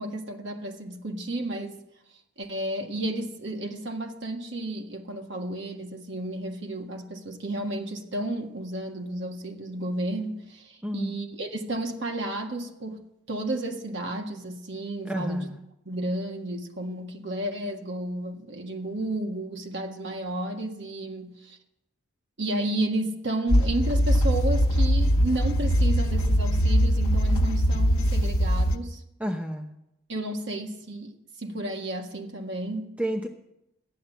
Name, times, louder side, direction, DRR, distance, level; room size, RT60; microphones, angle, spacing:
voice 1, 0.0-1.8 2.4-13.0 13.3-15.5 15.8-21.6 22.4-29.0 30.1-31.1 31.4-32.9, right 1 dB, 55° right, 1.6 m, -32 dB
voice 2, 10.8-11.2 15.0-15.6 29.2-29.7 33.0-33.3, equal, 5° right, 0.8 m, -30 dB
sound 1, 23.5-28.8, equal, 90° left, 0.9 m, -22 dB
13.0 x 9.6 x 7.2 m
head